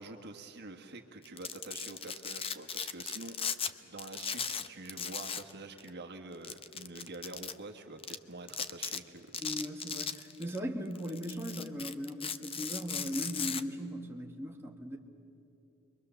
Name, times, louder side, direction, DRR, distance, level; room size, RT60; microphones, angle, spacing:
voice 1, 0.0-3.4 3.8-9.4, right 2 dB, 50° right, 4 dB, 1.5 m, -46 dB
Domestic sounds home sounds, 1.2-3.7 4.0-5.5 5.8-5.9 6.4-7.5 8.0-8.2 8.5-9.0 9.3-10.6 11.0-13.6, left 7 dB, 25° left, 0.7 m, -37 dB
voice 2, 9.4-15.0, equal, 10° right, -1 dB, 1.8 m, -38 dB
29.5 x 23.0 x 7.0 m, 2.8 s
head